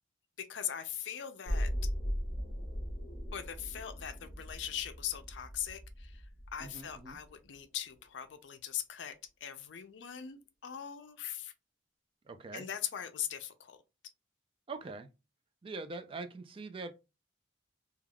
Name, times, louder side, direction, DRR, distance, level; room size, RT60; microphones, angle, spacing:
voice 1, 0.4-1.7 3.3-6.2 6.5-9.1 9.4-11.5 12.5-13.8, left 10 dB, 70° left, 0.4 m, -40 dB
sound 1, 1.4-7.4 7.7-7.8, equal, 40° left, 0.9 m, -38 dB
voice 2, 6.6-7.2 12.3-12.7 14.7-15.1 15.6-16.9, right 3 dB, 30° right, 0.3 m, -43 dB
3.3 x 2.3 x 2.2 m
head